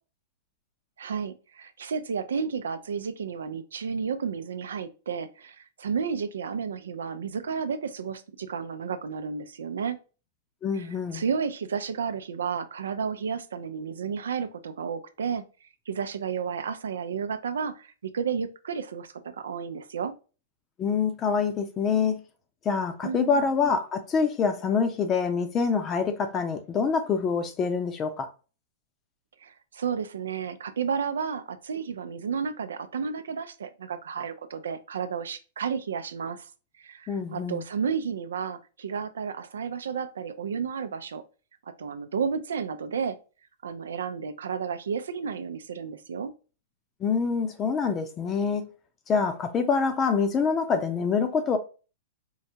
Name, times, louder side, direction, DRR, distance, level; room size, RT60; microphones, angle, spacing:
voice 1, 1.0-10.0 10.7-10.9 11.1-20.1 23.0-23.5 29.4-36.5 36.8-41.2 41.8-43.2 43.6-46.3, right 6 dB, 85° right, 0.4 m, -32 dB
voice 2, 10.6-11.2 20.8-22.2 22.6-28.3 37.1-37.6 47.0-48.7 49.1-51.6, left 5 dB, 25° left, 0.7 m, -26 dB
4.7 x 2.2 x 2.7 m
hypercardioid pair, 125°, 0 cm